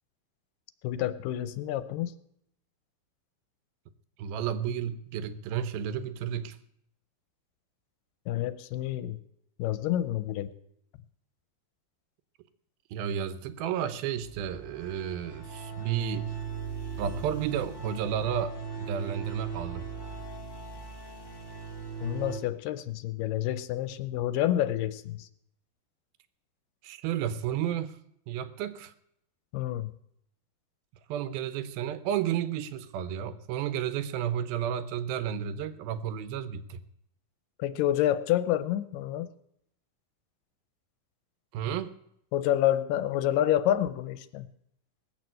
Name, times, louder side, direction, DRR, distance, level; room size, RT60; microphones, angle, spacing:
voice 1, 0.8-2.1 8.3-9.2 9.6-10.5 22.0-25.3 29.5-29.9 37.6-39.3 42.3-44.5, left 12 dB, 80° left, 14 dB, 2.3 m, -28 dB
voice 2, 4.2-6.6 12.9-16.4 17.0-19.8 26.8-28.0 28.3-28.9 31.1-36.8 41.5-41.9, right 9 dB, 90° right, 13 dB, 2.7 m, -32 dB
sound 1, 14.2-22.4, right 6 dB, 15° left, 0.9 m, -39 dB
19.0 x 7.6 x 7.7 m, 0.74 s
omnidirectional pair, 4.2 m